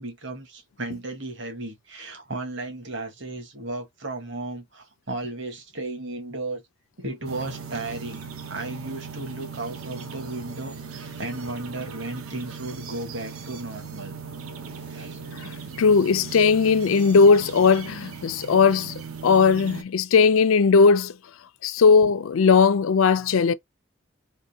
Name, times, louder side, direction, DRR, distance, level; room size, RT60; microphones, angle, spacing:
voice 1, 0.0-6.6 7.0-14.2 14.7-15.2, right 2 dB, 55° right, 1.3 m, -35 dB
sound 1, 7.2-19.8, right 5 dB, 90° right, 0.9 m, -38 dB
voice 2, 15.3-21.1 21.6-23.5, left 5 dB, 75° left, 0.4 m, -18 dB
3.6 x 2.6 x 2.7 m
head